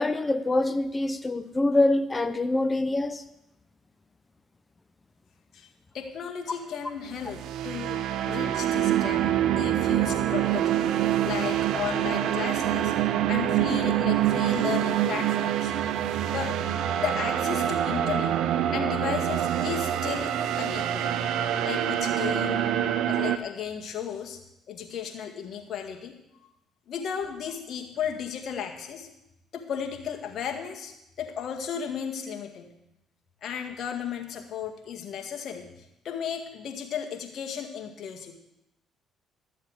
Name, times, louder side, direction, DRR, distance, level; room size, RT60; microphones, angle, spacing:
voice 1, 0.0-3.2, left 2 dB, 25° left, 12 dB, 1.0 m, -25 dB
voice 2, 5.9-8.0 8.2-10.8 11.2-12.9 13.3-15.7 16.3-16.6 17.0-18.4 18.7-20.3 20.6-21.1 21.6-22.6 23.1-24.4 24.7-26.2 26.9-29.1 29.5-32.7 33.4-38.3, left 8 dB, 60° left, 3 dB, 1.9 m, -34 dB
sound 1, 7.1-23.4, right 11 dB, 70° right, 0.7 m, -26 dB
12.5 x 7.4 x 6.6 m, 0.85 s
supercardioid pair, 65°, 0 cm